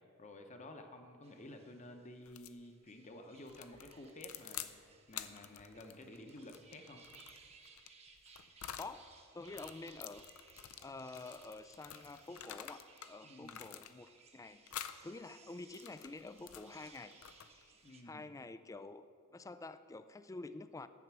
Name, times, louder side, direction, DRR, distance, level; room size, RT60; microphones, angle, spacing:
voice 1, 0.2-7.0 13.2-13.7 17.8-18.3, left 1 dB, 35° left, 6 dB, 0.9 m, -52 dB
sound 1, 1.2-18.0, right 4 dB, 30° right, 0.9 m, -63 dB
sound 2, 2.3-2.6 3.5-4.8 5.1-9.0 9.4-13.1 13.4-14.2 14.7-15.0 15.6-17.7, left 10 dB, 70° left, 0.5 m, -49 dB
voice 2, 8.8-10.2 10.8-14.6 15.0-17.1 17.5-17.7 18.0-19.1 19.3-20.9, left 3 dB, 15° left, 12 dB, 0.3 m, -48 dB
11.0 x 7.9 x 6.0 m, 2.3 s
head